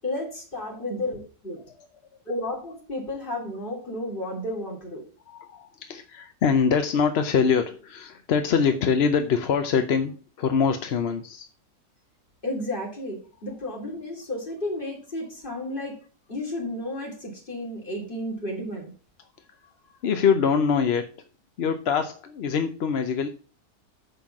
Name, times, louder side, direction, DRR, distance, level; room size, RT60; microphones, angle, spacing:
voice 1, 0.0-1.6 2.3-5.0 12.4-16.0 16.3-18.9, left 1 dB, 30° left, -2 dB, 3.3 m, -32 dB
voice 2, 5.3-11.5 19.6-19.7 20.0-21.1 21.6-23.3, left 6 dB, 55° left, 7 dB, 0.8 m, -24 dB
7.0 x 5.6 x 5.9 m, 0.37 s
omnidirectional pair, 1.7 m